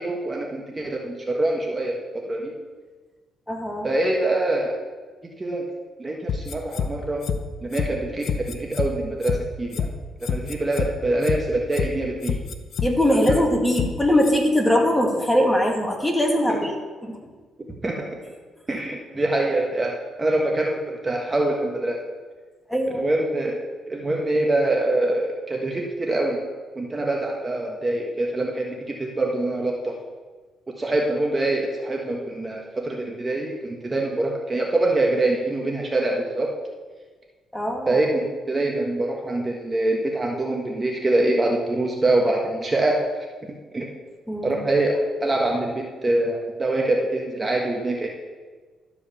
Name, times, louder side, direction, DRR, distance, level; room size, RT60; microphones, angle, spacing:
voice 1, 0.0-2.5 3.8-4.8 5.4-5.7 6.0-7.3 7.6-9.9 10.2-12.4 13.3-13.4 17.8-18.1 18.7-22.0 22.9-23.6 23.9-26.4 26.7-30.0 30.7-36.5 37.9-43.1 43.7-43.9 44.4-48.1, right 2 dB, 25° right, 0 dB, 1.4 m, -24 dB
voice 2, 3.5-3.9 12.8-17.2 22.7-23.0 37.5-38.0 44.3-44.6, left 1 dB, 5° left, 0 dB, 2.0 m, -21 dB
sound 1, 6.3-6.9 7.2-7.4 7.7-7.9 8.2-8.9 9.2-9.4 9.7-9.9 10.2-10.9 11.2-11.4 11.7-11.9 12.2-12.9 13.2-13.4 13.7-13.9 14.2-14.3, left 7 dB, 65° left, 0.8 m, -26 dB
12.5 x 4.9 x 7.0 m, 1.4 s
cardioid pair, 90°, 0 cm